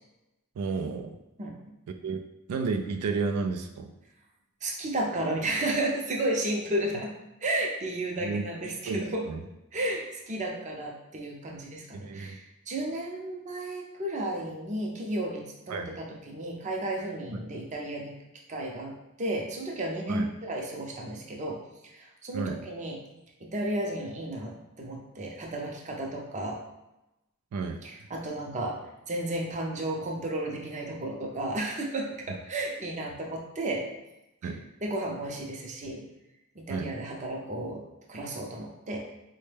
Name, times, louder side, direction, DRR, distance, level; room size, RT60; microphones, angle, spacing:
voice 1, 0.6-1.2 2.0-2.2 2.5-3.9 8.2-8.4 8.9-9.0 9.3-9.5 11.9-12.4 15.7-15.9 17.3-17.4 20.1-20.3 22.3-22.6 27.5-27.8 34.4-34.6 36.7-36.9, right 4 dB, 85° right, 5 dB, 0.3 m, -31 dB
voice 2, 4.6-7.1 7.4-9.3 9.7-18.1 18.5-23.0 23.4-26.6 27.8-28.8 29.1-33.9 34.4-34.5 34.8-36.0 36.6-37.8 38.1-39.1, right 1 dB, 35° right, 0 dB, 0.5 m, -33 dB
4.3 x 2.1 x 3.3 m, 0.94 s
head